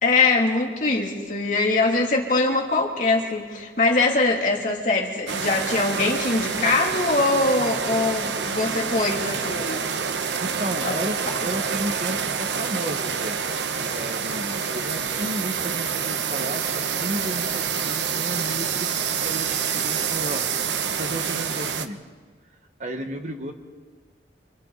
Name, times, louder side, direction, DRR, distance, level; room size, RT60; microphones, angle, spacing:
voice 1, 0.0-9.8 10.8-11.0, left 3 dB, 45° left, 0 dB, 2.9 m, -22 dB
sound 1, 5.3-21.9, right 6 dB, 85° right, 1.1 m, -27 dB
voice 2, 10.4-13.4 13.8-18.9 19.2-20.4 21.0-22.0 22.8-23.5, right 1 dB, 40° right, 5 dB, 1.6 m, -33 dB
27.5 x 26.5 x 4.1 m, 1.5 s
head